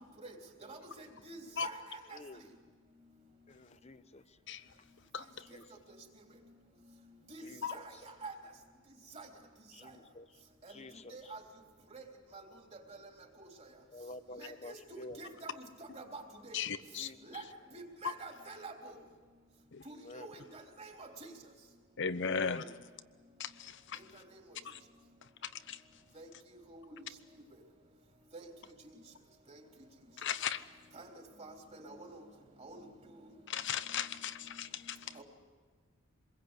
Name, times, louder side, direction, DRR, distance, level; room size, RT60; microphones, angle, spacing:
voice 1, 0.7-2.0 7.3-7.4 7.7-7.8 8.2-8.3 9.1-9.3 11.1-11.4 11.9-12.0 12.3-12.4 14.4-15.5 16.0-16.6 17.3-17.4 17.7-18.7 19.9-20.4 20.8-21.1 26.2-26.3 26.7-26.9 28.3-28.5 31.0-31.1 31.4-32.1 32.6-32.8 35.2-35.3, right 3 dB, 35° right, 2 dB, 3.6 m, -47 dB
voice 2, 3.5-4.4 4.7-4.8 5.5-5.6 7.4-7.8 9.7-10.4 10.7-11.3 13.9-15.2 17.0-17.2 19.9-20.3 22.1-22.7, left 2 dB, 35° left, 11 dB, 1.0 m, -49 dB
voice 3, 5.1-5.5 7.6-7.8 16.5-17.1 18.0-18.1 19.7-19.8 22.0-22.6 23.4-24.2 24.6-24.8 25.4-25.8 30.2-30.6 33.5-35.2, left 7 dB, 60° left, 13 dB, 1.0 m, -37 dB
26.5 x 21.5 x 8.3 m, 1.5 s
head